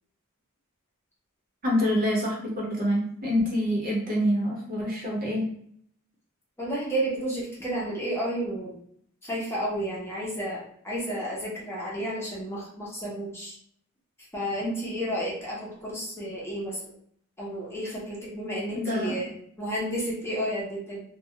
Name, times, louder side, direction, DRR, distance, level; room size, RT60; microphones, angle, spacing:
voice 1, 1.6-5.5 18.7-19.1, equal, 40° right, -3 dB, 0.8 m, -26 dB
voice 2, 6.6-8.7 9.2-13.5 14.3-16.9 17.4-19.3 19.6-21.0, right 1 dB, 10° left, -6 dB, 0.7 m, -31 dB
2.3 x 2.2 x 2.8 m, 0.65 s
head